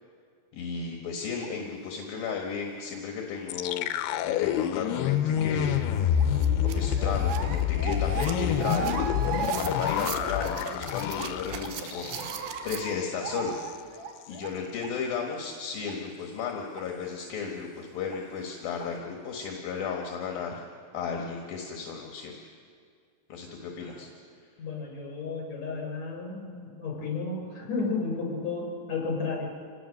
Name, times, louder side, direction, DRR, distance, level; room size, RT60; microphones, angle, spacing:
voice 1, 0.5-3.9 4.2-5.8 6.6-12.2 12.6-13.6 14.3-20.6 20.9-22.4 23.3-24.1, left 6 dB, 70° left, 1 dB, 3.3 m, -34 dB
sound 1, 1.4-1.5 2.2-2.4 2.9-3.0 3.6-3.7 4.4-4.5 5.3-5.4 6.2-11.3 11.6-14.9 15.3-15.4 15.8-15.9 16.7-16.8 18.1-18.2 18.8-18.9, right 6 dB, 55° right, 1.6 m, -37 dB
sound 2, 3.5-12.5 12.8-13.0 13.4-13.7, left 10 dB, 90° left, 2.8 m, -28 dB
sound 3, 5.5-5.6 5.9-12.8, right 10 dB, 75° right, 2.6 m, -42 dB
voice 2, 24.6-29.5, left 4 dB, 45° left, 0 dB, 6.2 m, -33 dB
27.5 x 18.5 x 6.5 m, 2.2 s
omnidirectional pair, 4.4 m